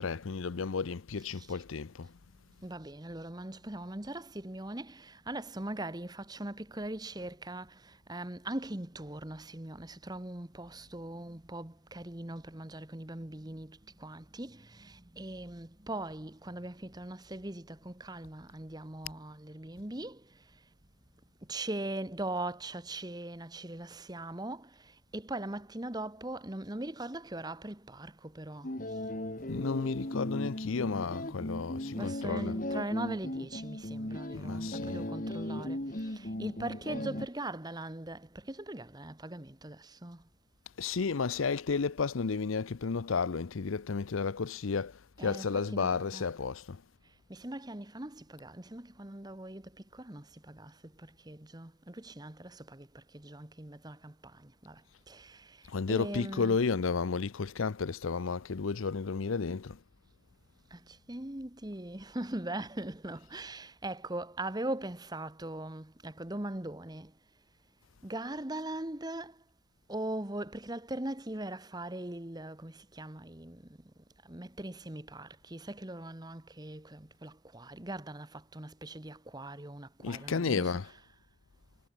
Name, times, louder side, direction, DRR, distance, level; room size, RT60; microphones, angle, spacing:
voice 1, 0.0-2.1 29.5-32.5 34.3-35.1 40.8-46.8 55.7-59.8 80.0-80.9, left 5 dB, 85° left, 0.6 m, -32 dB
voice 2, 1.3-1.6 2.6-20.6 21.5-28.7 31.9-40.2 45.2-46.3 47.3-56.6 60.7-67.1 68.0-69.4 69.9-73.8 74.2-80.8, right 1 dB, 20° right, 1.4 m, -41 dB
sound 1, 28.6-37.3, left 1 dB, 40° left, 2.5 m, -37 dB
head